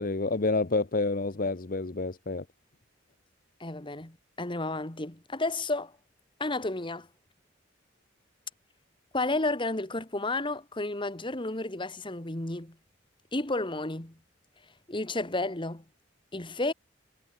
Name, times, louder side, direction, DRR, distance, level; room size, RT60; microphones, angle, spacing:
voice 1, 0.0-2.4, left 3 dB, 50° left, 0.9 m, -28 dB
voice 2, 3.6-5.9 6.4-7.1 9.1-12.7 13.3-14.1 14.9-15.8 16.3-16.7, left 2 dB, 25° left, 1.9 m, -32 dB
head